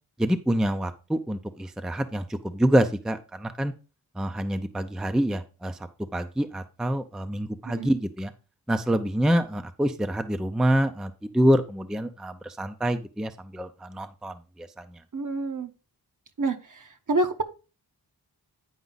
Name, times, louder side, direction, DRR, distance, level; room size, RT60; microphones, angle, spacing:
voice 1, 0.2-3.7 4.2-5.8 6.1-8.3 8.7-14.8, equal, ahead, 9 dB, 0.5 m, -26 dB
voice 2, 15.1-15.7 16.4-17.4, right 2 dB, 50° right, 7 dB, 0.9 m, -28 dB
9.4 x 4.9 x 3.9 m, 0.33 s
wide cardioid pair, 90°, 40 cm